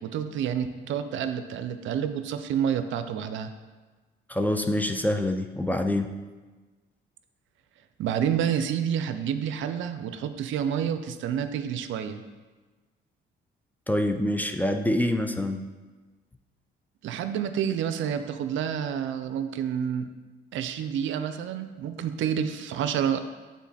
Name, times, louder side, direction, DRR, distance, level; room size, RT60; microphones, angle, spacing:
voice 1, 0.0-3.5 8.0-12.2 17.0-20.1 20.5-23.2, right 8 dB, 75° right, 9 dB, 0.5 m, -29 dB
voice 2, 4.3-6.1 13.9-15.6, left 1 dB, 10° left, 6 dB, 0.4 m, -26 dB
7.2 x 3.7 x 4.1 m, 1.3 s
cardioid pair, 90°, 20 cm